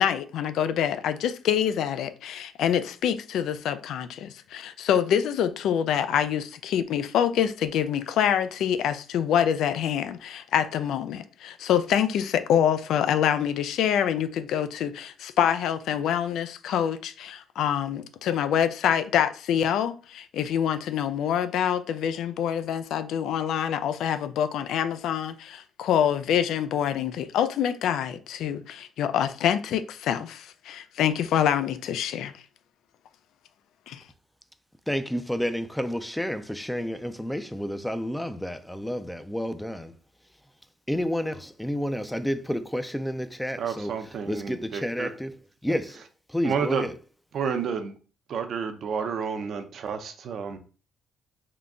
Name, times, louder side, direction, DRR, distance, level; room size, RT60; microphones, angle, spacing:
voice 1, 0.0-32.4 33.9-34.0, left 9 dB, 80° left, 0.3 m, -26 dB
voice 2, 34.9-39.9 40.9-43.9 44.3-45.3 45.6-46.0 46.3-46.9, equal, 5° left, 0.4 m, -30 dB
voice 3, 43.6-45.1 46.4-46.8 47.3-47.9 48.3-50.6, right 6 dB, 65° right, 0.6 m, -30 dB
3.7 x 2.2 x 3.7 m
cardioid pair, 90°, 0 cm